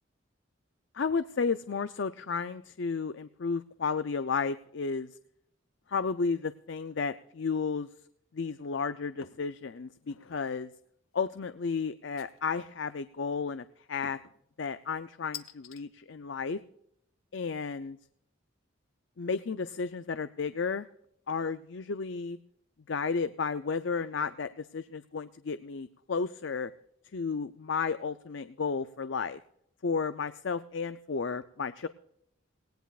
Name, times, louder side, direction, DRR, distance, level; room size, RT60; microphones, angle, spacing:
voice 1, 0.9-5.1 5.9-7.9 8.3-10.7 11.1-14.2 14.6-16.6 17.3-18.0 19.2-20.9 21.3-22.4 22.9-26.7 27.1-29.4 29.8-31.9, left 5 dB, 60° left, 12 dB, 0.5 m, -33 dB
sound 1, 9.2-9.5 10.0-10.4 12.2-12.7 14.0-14.4 15.3-15.8, left 8 dB, 80° left, 1.0 m, -46 dB
18.5 x 18.5 x 2.4 m, 0.73 s
head